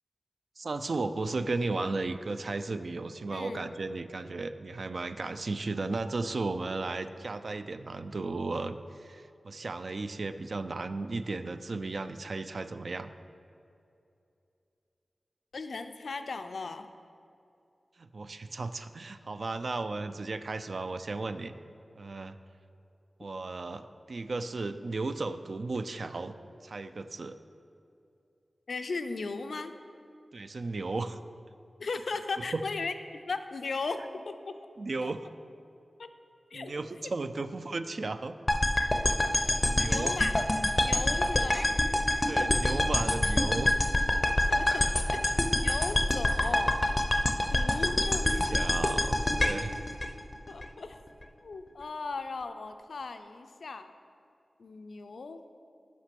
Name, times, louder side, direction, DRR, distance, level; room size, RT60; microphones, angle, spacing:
voice 1, 0.6-13.1 18.0-21.5 22.0-22.4 23.2-26.3 26.6-27.4 30.3-31.2 32.5-32.6 34.8-35.3 36.5-38.3 39.6-40.2 42.3-43.7 48.2-49.8, right 3 dB, 60° right, 11 dB, 0.3 m, -35 dB
voice 2, 3.3-3.7 15.5-16.9 28.7-29.7 31.8-32.9 33.3-34.0 34.2-34.6 35.0-35.1 36.0-36.1 36.5-37.1 39.8-40.3 40.8-41.7 44.5-45.2 45.5-46.7 47.5-48.5 50.5-51.0 51.4-53.9 54.6-55.4, left 4 dB, 80° left, 8 dB, 0.4 m, -37 dB
sound 1, 38.5-50.7, left 1 dB, 25° left, 0.5 m, -26 dB
5.9 x 5.3 x 5.9 m, 2.7 s
wide cardioid pair, 75°, 0 cm